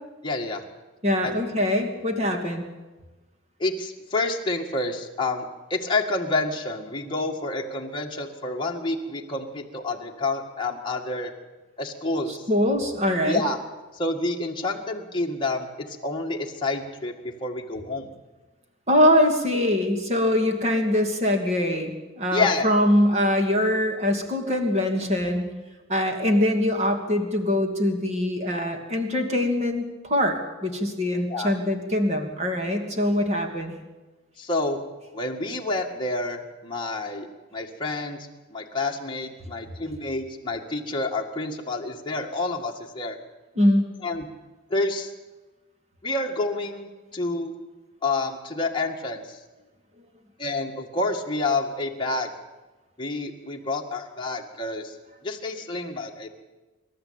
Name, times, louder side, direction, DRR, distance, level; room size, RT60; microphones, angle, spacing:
voice 1, 0.2-0.6 1.2-1.3 3.6-5.5 5.7-11.3 11.8-12.4 13.3-13.6 13.9-18.1 22.3-22.7 31.3-31.5 34.4-34.8 35.1-38.2 38.5-43.2 44.0-44.3 44.7-45.1 46.0-47.5 48.0-49.4 50.4-52.3 53.0-55.0 55.2-56.3, left 2 dB, 20° left, 0 dB, 2.0 m, -28 dB
voice 2, 1.0-2.7 12.3-13.4 18.9-25.4 25.9-33.7 43.6-43.9, left 1 dB, 30° right, 4 dB, 2.7 m, -23 dB
26.5 x 13.0 x 8.9 m, 1.2 s
head